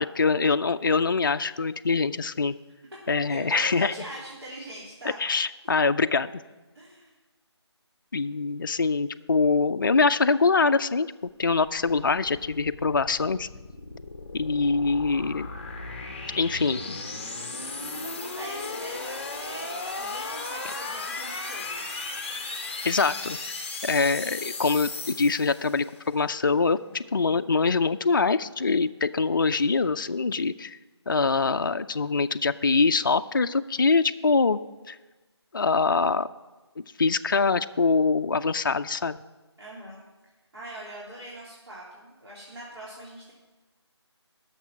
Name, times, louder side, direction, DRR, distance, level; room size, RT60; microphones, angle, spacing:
voice 1, 0.0-2.5 3.1-3.9 5.2-6.3 8.1-11.1 11.4-13.5 14.3-15.5 16.4-17.0 22.8-23.4 23.8-30.8 31.1-34.6 34.9-35.0 35.5-36.3 37.0-39.2, left 4 dB, 50° left, 10 dB, 0.3 m, -24 dB
voice 2, 3.1-5.5 6.7-7.1 17.8-21.8 39.6-40.0 40.5-43.3, right 1 dB, 65° right, -6 dB, 3.0 m, -42 dB
sound 1, 11.7-26.0, left 3 dB, 25° left, 0.8 m, -36 dB
11.5 x 6.6 x 5.8 m, 1.2 s
figure-of-eight pair, 160°, 15 cm